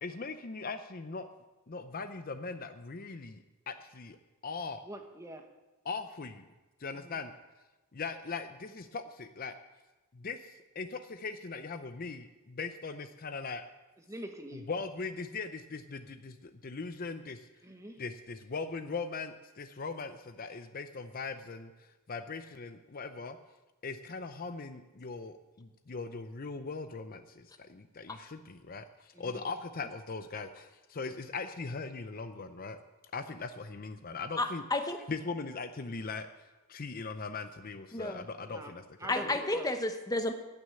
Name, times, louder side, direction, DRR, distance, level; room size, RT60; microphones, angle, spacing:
voice 1, 0.0-1.3 1.7-4.2 4.4-4.8 5.8-6.5 6.8-7.3 7.9-9.5 10.1-13.6 14.5-17.4 18.0-21.7 22.1-23.4 23.8-32.8 33.1-34.6 35.1-36.3 36.7-39.1, left 4 dB, 40° left, 9 dB, 0.6 m, -40 dB
voice 2, 4.8-5.4 6.9-7.2 14.1-14.6 17.6-18.0 29.1-29.4 38.4-38.7 39.0-39.7, right 1 dB, 15° right, 5 dB, 1.2 m, -44 dB
voice 3, 34.4-35.0 37.9-38.3 39.1-40.3, left 2 dB, 15° left, 6 dB, 1.0 m, -32 dB
16.0 x 6.4 x 8.8 m, 1.1 s
head